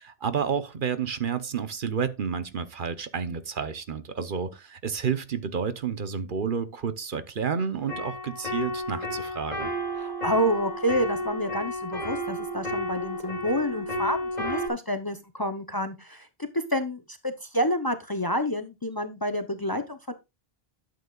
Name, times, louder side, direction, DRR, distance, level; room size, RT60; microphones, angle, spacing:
voice 1, 0.0-9.7, right 6 dB, 55° right, 1.0 m, -30 dB
sound 1, 7.9-14.7, equal, 45° left, 2.5 m, -32 dB
voice 2, 10.0-16.3 16.5-20.1, equal, 25° left, 0.7 m, -29 dB
11.5 x 8.2 x 2.3 m
omnidirectional pair, 1.0 m